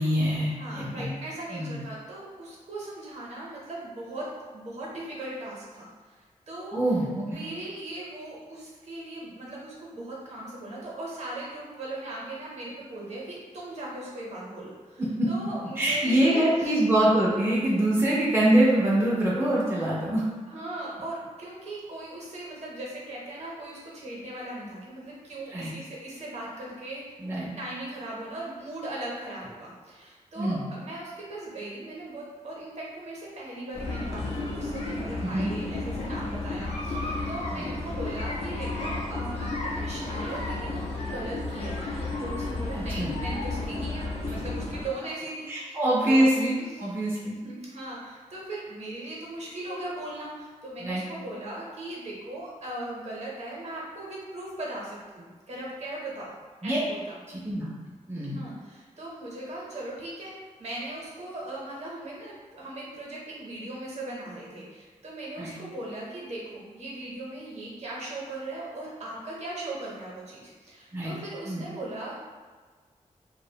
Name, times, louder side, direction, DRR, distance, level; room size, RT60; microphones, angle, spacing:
voice 1, 0.0-1.1 1.5-1.8 6.7-7.4 15.0-15.3 15.8-20.2 25.5-25.7 27.2-27.6 30.4-30.7 35.2-35.5 37.5-37.7 42.7-43.1 44.4-44.5 45.5-46.5 46.8-47.4 50.8-51.0 56.6-56.8 57.3-57.7 58.1-58.4 65.4-65.6 70.9-71.1 71.5-71.6, right 1 dB, 20° right, -6 dB, 0.5 m, -24 dB
voice 2, 0.5-6.8 7.2-16.8 20.5-27.2 27.6-46.9 47.4-56.3 56.6-57.2 58.3-72.2, right 1 dB, 60° right, -4 dB, 0.7 m, -38 dB
sound 1, 33.7-44.9, left 2 dB, 55° left, 0.5 m, -32 dB
2.4 x 2.1 x 2.7 m, 1.4 s
wide cardioid pair, 120°, 13 cm